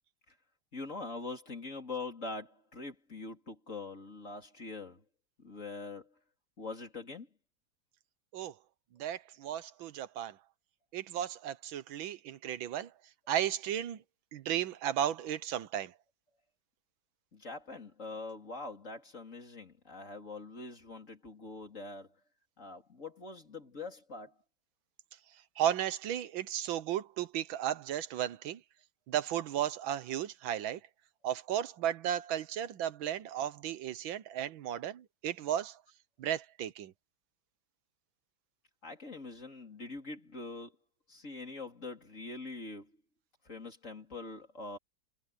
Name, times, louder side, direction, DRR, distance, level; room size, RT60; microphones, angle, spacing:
voice 1, 0.7-5.0 5.4-6.1 6.6-7.3 17.3-22.2 22.6-24.3 38.8-40.8 41.1-42.9 43.4-44.8, left 3 dB, 40° left, 4.2 m, -43 dB
voice 2, 9.0-10.4 10.9-12.9 13.3-14.0 14.3-15.9 25.6-28.6 29.1-30.8 31.2-35.8 36.2-36.9, right 11 dB, 80° right, 1.6 m, -34 dB
omnidirectional pair, 2.1 m